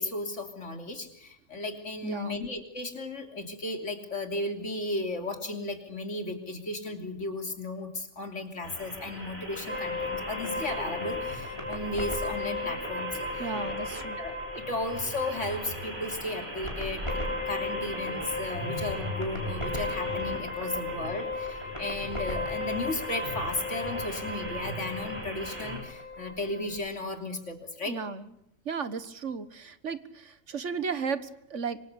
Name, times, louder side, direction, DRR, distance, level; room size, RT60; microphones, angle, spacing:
voice 1, 0.0-13.5 14.2-17.2 17.5-28.0, left 2 dB, 80° left, 5 dB, 3.5 m, -35 dB
voice 2, 2.0-2.4 13.4-14.2 27.9-28.3 28.7-31.8, right 5 dB, 75° right, 13 dB, 1.8 m, -34 dB
sound 1, 8.6-25.8, equal, 55° right, 6.6 m, -40 dB
sound 2, 9.7-26.8, left 2 dB, 25° left, 7.1 m, -36 dB
26.0 x 25.0 x 8.3 m, 0.75 s
omnidirectional pair, 1.2 m